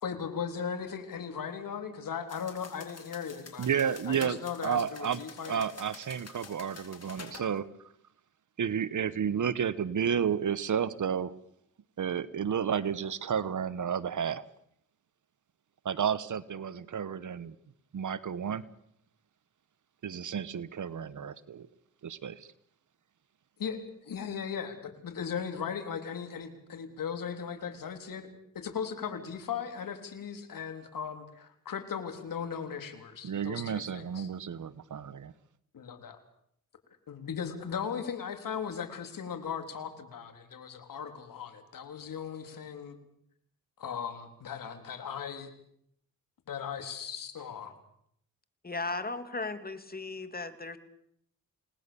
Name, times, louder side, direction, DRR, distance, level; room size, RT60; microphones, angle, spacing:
voice 1, 0.0-5.6 23.6-28.3 28.5-34.3 35.7-36.2 37.1-43.0 43.8-45.5 46.5-47.7, left 7 dB, 80° left, 7 dB, 3.7 m, -38 dB
sound 1, 2.3-7.5, left 4 dB, 50° left, 5.0 m, -49 dB
voice 2, 3.6-4.4 4.6-5.2 5.5-7.7 8.6-11.3 12.0-14.4 15.8-17.5 17.9-18.6 20.0-21.7 22.0-22.5 33.2-35.3, right 7 dB, 65° right, 17 dB, 1.2 m, -31 dB
voice 3, 48.6-50.8, left 3 dB, 25° left, 10 dB, 2.7 m, -36 dB
29.5 x 19.0 x 7.0 m, 0.72 s
cardioid pair, 65°, 33 cm